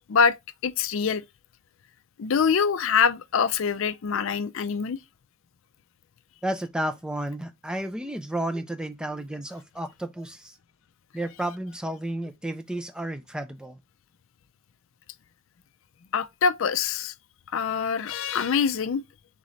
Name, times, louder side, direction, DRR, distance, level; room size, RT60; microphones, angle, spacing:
voice 1, 0.6-1.2 2.2-5.0 16.1-17.1 17.5-19.0, left 6 dB, 60° left, 0.4 m, -24 dB
voice 2, 6.4-10.6 11.1-13.8, right 1 dB, 5° right, 0.4 m, -32 dB
3.7 x 3.2 x 3.9 m
head